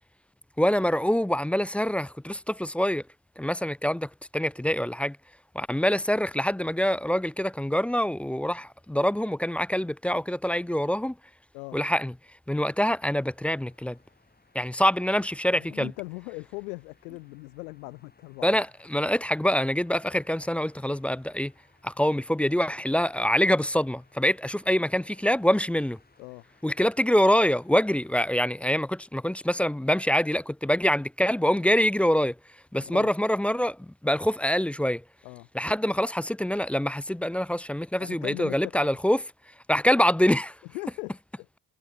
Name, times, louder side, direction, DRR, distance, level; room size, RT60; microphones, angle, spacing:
voice 1, 0.6-3.0 3.4-5.2 5.5-11.2 11.7-12.1 12.5-14.0 14.5-15.9 18.4-21.5 21.8-26.0 26.6-32.4 32.7-35.0 35.5-39.2 39.7-40.6, equal, 5° left, 0.4 m, -25 dB
sound 1, 12.7-28.7, left 3 dB, 20° left, 6.3 m, -63 dB
voice 2, 15.5-18.6 26.2-26.4 32.8-33.1 35.2-35.5 38.0-39.0 40.7-41.5, left 28 dB, 75° left, 0.9 m, -39 dB
hypercardioid pair, 55°, 47 cm